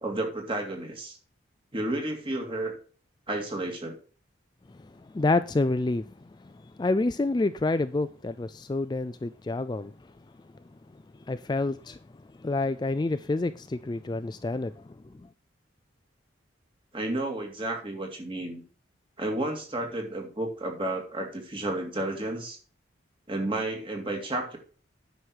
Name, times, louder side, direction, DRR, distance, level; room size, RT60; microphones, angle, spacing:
voice 1, 0.0-1.2 1.7-2.8 3.3-4.0 16.9-18.6 19.2-22.6 23.3-24.6, right 1 dB, 25° right, 2.3 m, -32 dB
voice 2, 5.0-6.1 6.4-6.5 6.8-9.9 11.3-12.0 12.4-15.0, left 2 dB, 20° left, 0.3 m, -28 dB
9.7 x 6.3 x 4.6 m
head